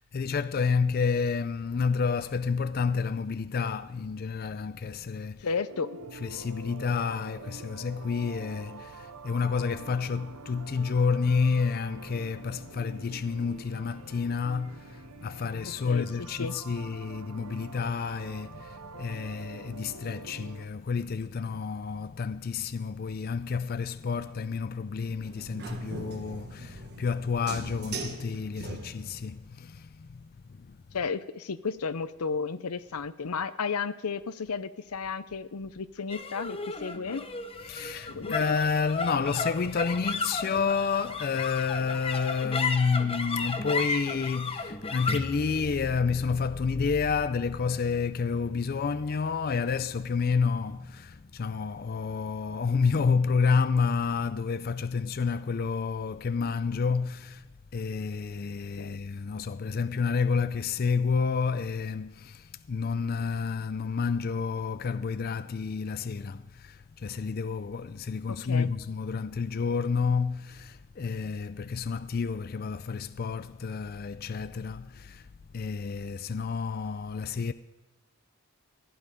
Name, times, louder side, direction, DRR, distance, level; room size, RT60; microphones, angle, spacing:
voice 1, 0.0-5.6 6.1-30.8 37.6-57.5 57.7-75.3 75.5-77.5, left 5 dB, 40° left, 0.4 m, -29 dB
voice 2, 5.4-6.0 15.8-16.1 16.4-16.5 30.9-37.2 38.1-38.6 58.8-59.0 68.3-68.7, left 5 dB, 85° left, 0.6 m, -33 dB
sound 1, 5.7-20.7, right 5 dB, 85° right, 0.8 m, -47 dB
sound 2, 25.2-29.3, right 2 dB, 45° right, 1.4 m, -40 dB
sound 3, 36.1-52.7, left 4 dB, 25° left, 0.8 m, -36 dB
15.5 x 11.5 x 5.0 m
head